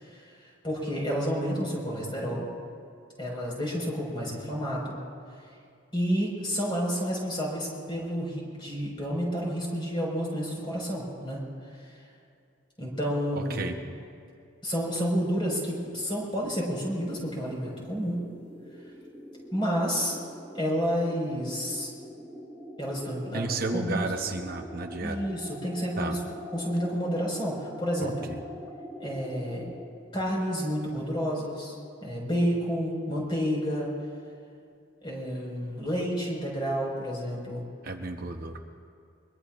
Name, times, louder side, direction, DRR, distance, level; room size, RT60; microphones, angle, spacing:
voice 1, 0.0-2.5 3.2-4.9 5.9-11.4 11.7-12.0 12.8-13.7 14.6-18.2 19.5-20.1 20.5-21.9 22.8-24.0 25.0-28.3 29.0-29.7 30.1-33.9 35.0-37.6, equal, 25° left, -3 dB, 5.0 m, -30 dB
voice 2, 13.3-13.8 23.3-25.2 26.0-26.2 28.0-28.1 37.8-38.6, right 3 dB, 50° right, 4 dB, 0.9 m, -32 dB
sound 1, 16.5-29.8, equal, 10° left, 1.6 m, -44 dB
23.5 x 23.0 x 2.5 m, 2.4 s
head